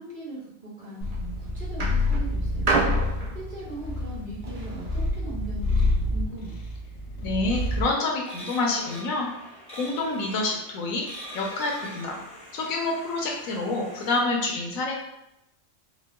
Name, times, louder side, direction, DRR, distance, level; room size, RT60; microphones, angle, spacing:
voice 1, 0.0-2.9 3.3-6.6, right 1 dB, 35° right, -8 dB, 1.0 m, -39 dB
sound 1, 0.8-1.2 1.8-5.0 5.8-5.9, right 3 dB, 55° right, 0.4 m, -29 dB
Purr, 1.0-7.9, left 2 dB, 65° left, 0.8 m, -28 dB
voice 2, 7.2-9.3 9.7-11.0 11.3-12.1 12.5-15.0, left 2 dB, 80° left, -1 dB, 1.1 m, -27 dB
sound 2, 7.5-14.2, equal, 5° left, 0.5 m, -43 dB
4.3 x 2.1 x 2.2 m, 0.84 s
omnidirectional pair, 1.4 m